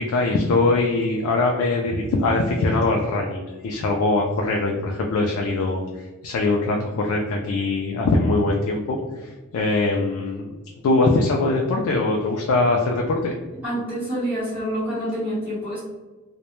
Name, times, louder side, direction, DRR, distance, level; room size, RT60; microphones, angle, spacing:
voice 1, 0.0-10.5 10.8-13.3, left 2 dB, 85° left, 1 dB, 0.3 m, -22 dB
voice 2, 13.6-15.8, equal, 10° right, -14 dB, 0.9 m, -27 dB
2.1 x 2.1 x 2.9 m, 1.2 s
head